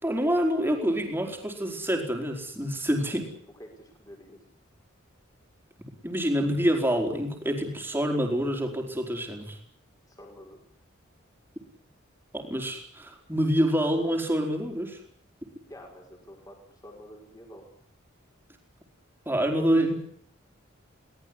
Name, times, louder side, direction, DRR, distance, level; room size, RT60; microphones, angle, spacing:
voice 1, 0.0-3.3 6.0-9.6 12.3-15.0 19.2-19.9, equal, 10° right, 3 dB, 4.7 m, -27 dB
voice 2, 3.6-4.4 10.1-10.6 15.7-17.7, equal, 20° left, 2 dB, 5.9 m, -48 dB
23.5 x 19.0 x 9.9 m, 0.63 s
head